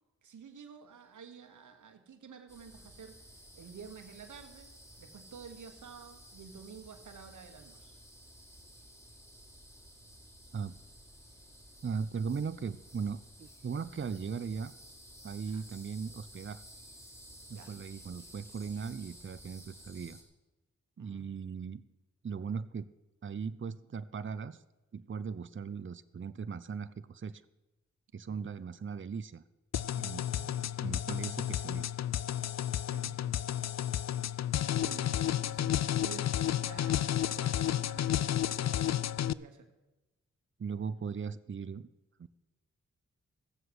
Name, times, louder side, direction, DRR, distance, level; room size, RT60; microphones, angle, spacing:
voice 1, 0.2-3.3 3.5-4.7 5.0-8.0 15.5-15.6 17.5-17.7 21.0-21.3 28.3-28.5 30.3-30.9 32.9-33.3 34.7-39.7, right 6 dB, 85° right, 5 dB, 1.4 m, -50 dB
sound 1, 2.5-20.2, equal, 10° left, 4.7 m, -54 dB
voice 2, 11.8-14.7 15.2-16.6 17.5-20.2 21.0-21.8 22.2-22.9 23.2-24.6 24.9-27.4 28.1-29.4 30.0-30.3 30.8-31.9 40.6-41.9 42.2-42.3, right 6 dB, 40° right, 13 dB, 0.7 m, -38 dB
sound 2, 29.7-39.3, left 11 dB, 65° left, 0.5 m, -32 dB
15.0 x 7.6 x 8.0 m, 1.0 s
cardioid pair, 50°, 30 cm